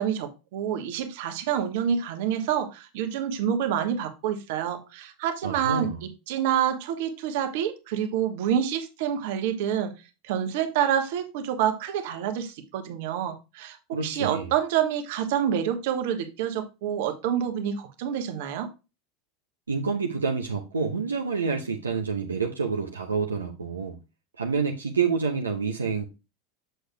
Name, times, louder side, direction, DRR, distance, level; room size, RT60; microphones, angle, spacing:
voice 1, 0.0-9.9 10.2-18.7, right 9 dB, 60° right, 1.2 m, -27 dB
voice 2, 5.4-6.0 13.9-14.5 19.7-24.0 24.4-26.0, right 5 dB, 80° right, 0.8 m, -28 dB
7.8 x 6.5 x 2.2 m
figure-of-eight pair, 80°, 0 cm